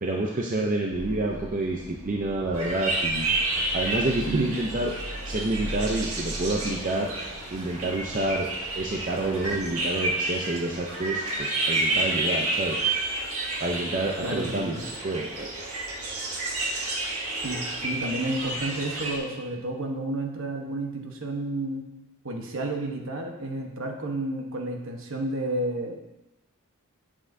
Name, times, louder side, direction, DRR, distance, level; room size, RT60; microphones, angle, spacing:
voice 1, 0.0-3.3 3.7-4.9 5.3-7.1 7.5-8.5 8.8-12.8 13.6-15.6, right 2 dB, 35° right, -1 dB, 0.6 m, -28 dB
sound 1, 0.9-9.7, equal, 15° right, 1.2 m, -40 dB
sound 2, 2.5-19.2, right 2 dB, 80° right, 1.7 m, -30 dB
voice 2, 14.2-14.8 17.3-21.9 22.2-26.0, right 2 dB, 60° right, 2 dB, 1.1 m, -31 dB
8.5 x 7.4 x 2.7 m, 0.99 s
head